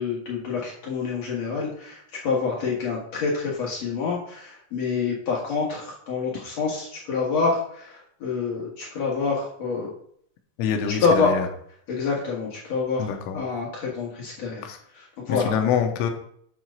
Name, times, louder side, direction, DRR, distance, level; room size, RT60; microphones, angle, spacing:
voice 1, 0.0-9.9 11.0-11.3 11.9-13.1 13.3-14.7 14.9-15.5, left 5 dB, 65° left, -4 dB, 1.6 m, -27 dB
voice 2, 10.6-11.5 13.0-13.5 14.6-14.8 15.3-16.1, left 7 dB, 90° left, 4 dB, 3.4 m, -25 dB
9.1 x 4.0 x 6.3 m, 0.64 s
omnidirectional pair, 5.6 m